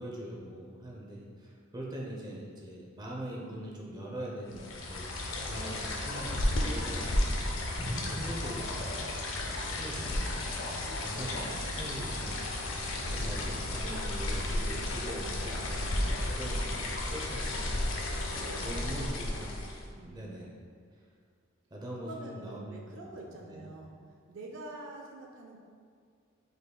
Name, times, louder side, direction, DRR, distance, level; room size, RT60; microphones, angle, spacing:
voice 1, 0.0-5.2 5.5-8.9 9.4-10.4 10.7-12.4 12.7-18.2 18.6-19.6 20.0-20.5 21.7-23.1 23.4-23.6, right 1 dB, 20° right, -3 dB, 0.7 m, -42 dB
sound 1, 4.5-19.9, left 1 dB, 75° left, 0.6 m, -33 dB
sound 2, 7.7-10.6 10.9-11.0, equal, 50° left, 1.0 m, -42 dB
voice 2, 18.2-19.5 19.9-20.4 22.0-23.9 24.3-25.6, right 2 dB, 70° right, 0 dB, 0.5 m, -46 dB
5.3 x 4.0 x 2.2 m, 2.1 s
head